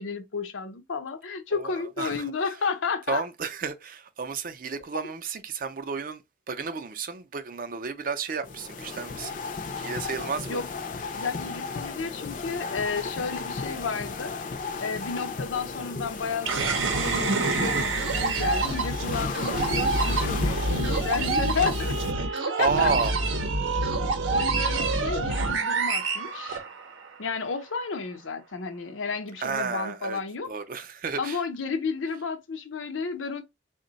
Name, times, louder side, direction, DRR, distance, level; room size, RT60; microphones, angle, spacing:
voice 1, 0.0-3.2 10.5-10.7 11.1-14.3 14.8-22.9 24.3-26.6 27.2-30.5 31.2-33.4, left 5 dB, 85° left, 0.7 m, -32 dB
voice 2, 1.5-2.3 3.1-6.2 6.5-9.4 9.8-10.6 22.6-23.1 29.4-30.2 30.5-31.4, right 5 dB, 45° right, 0.4 m, -31 dB
sound 1, 8.4-22.1, left 4 dB, 40° left, 0.4 m, -35 dB
sound 2, 16.5-27.1, right 3 dB, 85° right, 0.7 m, -26 dB
3.7 x 2.1 x 3.9 m
head